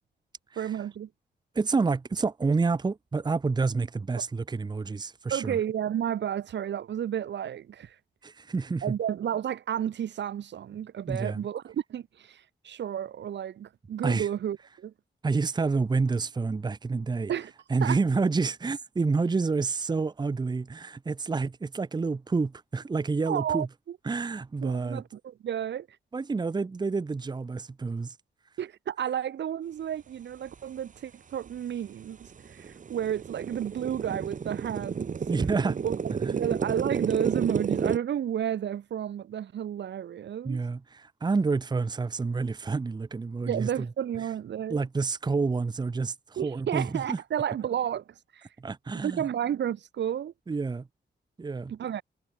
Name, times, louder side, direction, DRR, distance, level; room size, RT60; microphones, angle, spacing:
voice 1, 0.6-1.1 5.3-7.9 8.8-14.9 17.3-17.5 17.8-18.0 23.3-24.0 24.6-25.9 28.6-32.2 32.5-35.1 35.8-35.9 36.3-40.6 43.5-44.8 46.4-48.0 48.3-48.5 49.0-50.3 51.7-52.0, right 9 dB, 70° right, 1.0 m, -31 dB
voice 2, 1.5-5.6 8.2-8.9 11.1-11.5 14.0-14.3 15.2-17.3 17.7-23.7 24.0-25.0 26.1-28.1 35.3-35.8 36.2-36.4 40.4-43.9 44.7-47.2 48.6-49.3 50.5-50.9 51.4-51.7, right 4 dB, 25° right, 0.8 m, -28 dB
sound 1, 31.5-31.6 32.0-38.0, right 6 dB, 45° right, 1.4 m, -31 dB
wide cardioid pair, 130°, 19 cm